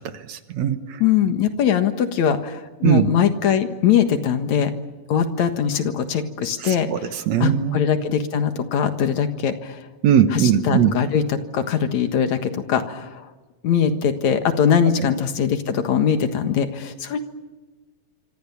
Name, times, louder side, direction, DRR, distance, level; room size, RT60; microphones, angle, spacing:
voice 1, 0.0-1.0 2.8-3.1 6.6-7.8 10.0-11.0, right 9 dB, 70° right, 9 dB, 2.5 m, -20 dB
voice 2, 1.0-4.7 5.1-6.9 7.4-9.9 10.3-13.3 13.6-17.2, left 8 dB, 70° left, 7 dB, 2.8 m, -21 dB
26.5 x 25.5 x 7.2 m, 1.2 s
omnidirectional pair, 3.4 m